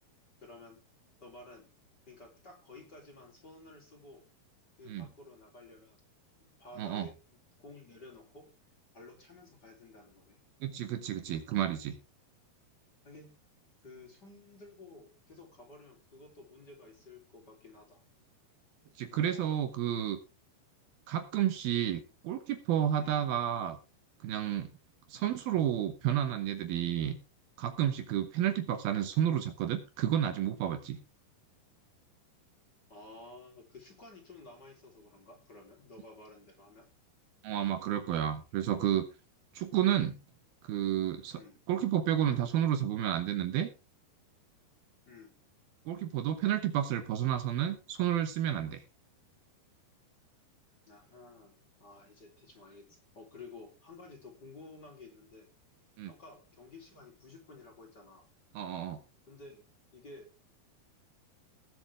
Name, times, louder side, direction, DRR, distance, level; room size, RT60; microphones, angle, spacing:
voice 1, 0.4-0.8 1.2-1.7 2.0-4.2 4.8-6.0 6.4-7.2 7.6-8.5 8.9-10.4 13.0-13.4 13.8-18.0 19.1-19.5 23.0-23.2 25.1-25.3 32.9-36.9 41.3-41.5 45.0-45.3 50.9-55.5 56.1-58.3 59.3-59.6 59.9-60.3, left 3 dB, 25° left, 1 dB, 3.6 m, -53 dB
voice 2, 10.6-12.0 19.0-20.2 21.1-23.8 24.2-24.7 25.1-27.2 27.6-31.0 37.4-39.1 39.5-40.2 40.7-41.4 41.7-43.7 45.9-48.8 56.0-56.1 58.5-59.0, right 10 dB, 70° right, 8 dB, 2.8 m, -31 dB
20.0 x 7.3 x 3.5 m, 0.29 s
omnidirectional pair, 4.8 m